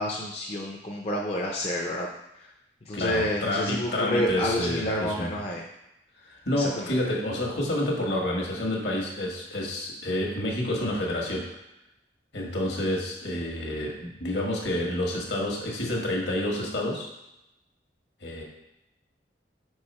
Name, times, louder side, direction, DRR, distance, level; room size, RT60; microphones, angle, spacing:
voice 1, 0.0-2.1 2.3-2.5 2.9-5.6 6.5-7.0, left 1 dB, 35° left, -2 dB, 0.5 m, -29 dB
voice 2, 2.9-5.3 6.2-11.5 12.3-17.1 18.2-18.4, left 1 dB, 70° left, -1 dB, 1.4 m, -29 dB
5.1 x 4.7 x 4.2 m, 0.89 s
head